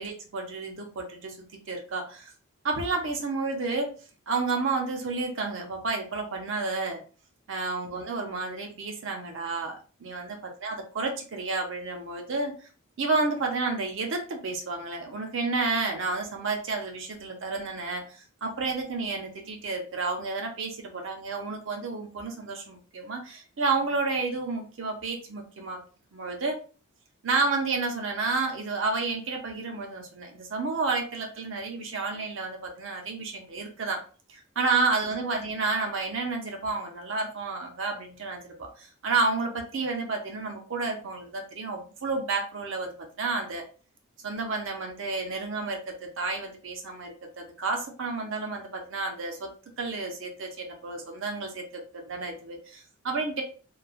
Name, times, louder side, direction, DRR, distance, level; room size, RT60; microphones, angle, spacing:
voice 1, 0.0-2.3 2.6-3.9 4.3-7.0 7.5-12.7 13.0-25.8 26.1-26.6 27.2-34.0 34.3-43.6 44.2-49.5 49.8-53.4, right 3 dB, 55° right, 2 dB, 0.5 m, -31 dB
3.0 x 2.2 x 2.3 m, 0.38 s
head